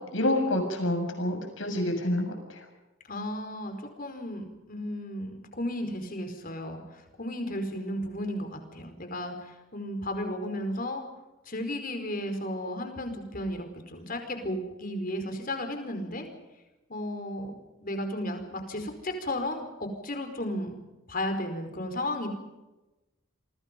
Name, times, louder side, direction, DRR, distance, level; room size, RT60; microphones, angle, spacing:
voice 1, 0.1-2.6, left 1 dB, 65° left, 5 dB, 7.0 m, -28 dB
voice 2, 3.1-11.0 11.5-16.3 16.9-20.7 21.1-22.3, left 1 dB, 40° left, 6 dB, 4.8 m, -34 dB
29.0 x 24.0 x 5.4 m, 1.0 s
head